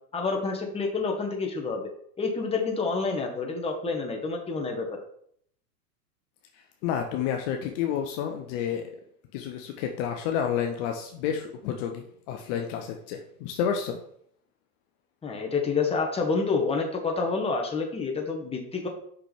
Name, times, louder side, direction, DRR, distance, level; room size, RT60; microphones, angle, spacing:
voice 1, 0.1-1.9 2.2-4.9 15.2-18.9, left 4 dB, 10° left, 1 dB, 1.2 m, -28 dB
voice 2, 6.8-8.8 9.3-14.0, left 8 dB, 45° left, 4 dB, 0.8 m, -30 dB
5.9 x 5.7 x 3.4 m, 0.67 s
hypercardioid pair, 110°, 47 cm